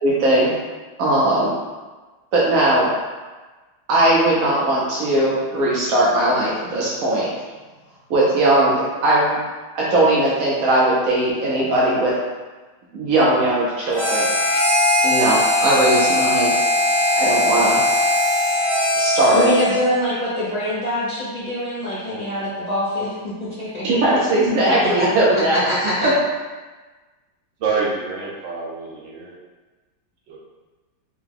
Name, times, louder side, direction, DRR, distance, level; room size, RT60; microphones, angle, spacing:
voice 1, 0.0-0.5 1.0-1.5 2.3-2.9 3.9-7.3 8.1-9.4 9.7-12.1 12.9-14.3 15.0-16.5 17.1-17.8 19.0-19.5 23.8-25.6 26.0-26.1, right 1 dB, 60° right, -6 dB, 0.9 m, -18 dB
Harmonica, 13.9-19.9, left 1 dB, 20° right, 1.2 m, -19 dB
voice 2, 19.3-24.2 24.6-26.1, left 1 dB, 40° left, -10 dB, 0.5 m, -24 dB
voice 3, 27.6-29.3 30.3-30.4, right 4 dB, 75° right, -3 dB, 1.6 m, -26 dB
4.7 x 2.3 x 3.5 m, 1.3 s
omnidirectional pair, 2.1 m